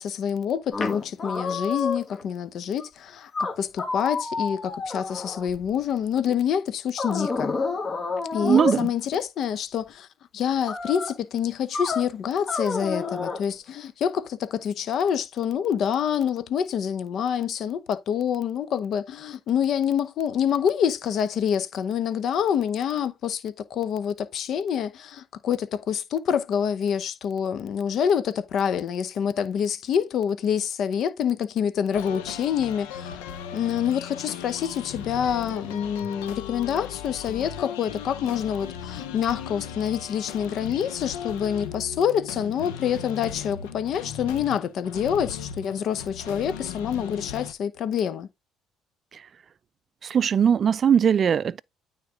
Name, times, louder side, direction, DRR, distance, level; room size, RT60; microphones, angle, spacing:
voice 1, 0.0-3.3 3.6-7.6 8.3-10.1 10.3-33.2 33.5-48.3, left 8 dB, 60° left, 0.8 m, -27 dB
sound 1, 0.7-2.2 2.8-2.9 3.3-5.7 7.0-8.8 10.7-11.2 11.7-12.1 12.5-13.4, left 4 dB, 40° left, 1.8 m, -29 dB
voice 2, 8.4-8.9 49.1-49.2 50.0-51.6, right 8 dB, 45° right, 0.3 m, -20 dB
sound 2, 31.9-47.5, left 8 dB, 90° left, 0.9 m, -37 dB
9.3 x 3.8 x 3.5 m
supercardioid pair, 70°, 0 cm